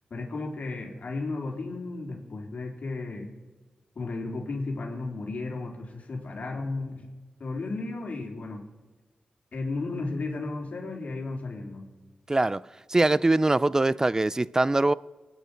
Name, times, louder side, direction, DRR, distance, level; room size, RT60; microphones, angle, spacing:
voice 1, 0.1-3.3 4.0-7.1 7.4-8.6 9.5-11.8, left 3 dB, 60° left, 3.8 m, -34 dB
voice 2, 12.3-14.9, right 2 dB, 20° right, 0.4 m, -23 dB
27.5 x 9.2 x 5.1 m
wide cardioid pair, 90°, 3 cm